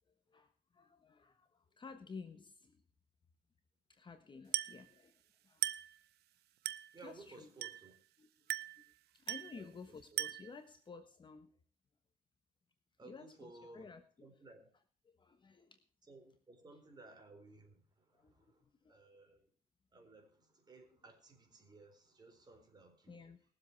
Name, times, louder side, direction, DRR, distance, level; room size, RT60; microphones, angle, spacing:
voice 1, 0.3-2.8 3.9-5.7 7.0-7.5 8.2-8.6 9.1-11.5 13.0-14.3 15.0-15.8 18.1-19.1 23.1-23.4, left 4 dB, 30° left, 8 dB, 1.3 m, -54 dB
Glass, 4.5-4.9 5.6-6.0 6.7-7.0 7.6-8.0 8.5-8.9 9.3-9.6 10.2-10.6, right 14 dB, 75° right, 0.8 m, -39 dB
voice 2, 6.9-7.9 9.5-9.7 13.0-13.9 14.2-14.7 16.1-18.6 18.9-19.5 19.9-23.1, right 2 dB, 25° right, 5 dB, 4.2 m, -58 dB
20.0 x 7.7 x 4.7 m, 0.42 s
cardioid pair, 110°, 17 cm